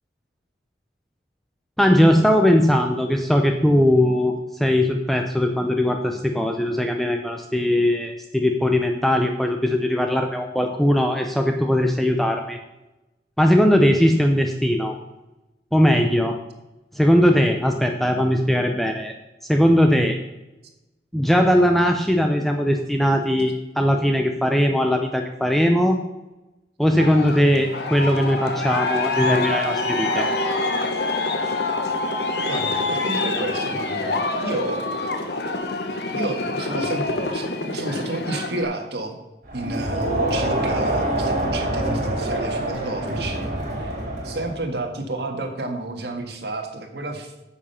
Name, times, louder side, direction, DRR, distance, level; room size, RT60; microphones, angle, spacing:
voice 1, 1.8-12.6 13.4-15.0 15.7-16.4 16.9-19.1 19.5-20.2 21.1-26.0 26.8-30.3, equal, ahead, 4 dB, 0.6 m, -19 dB
Aircraft, 27.0-38.6, left 2 dB, 65° left, 1.2 m, -26 dB
voice 2, 32.5-34.9 36.1-39.2 39.5-43.9 44.2-47.3, right 2 dB, 65° right, 4 dB, 1.7 m, -31 dB
Crowd, 39.5-44.6, right 1 dB, 45° right, 4.0 m, -25 dB
9.9 x 7.3 x 5.7 m, 1.0 s
head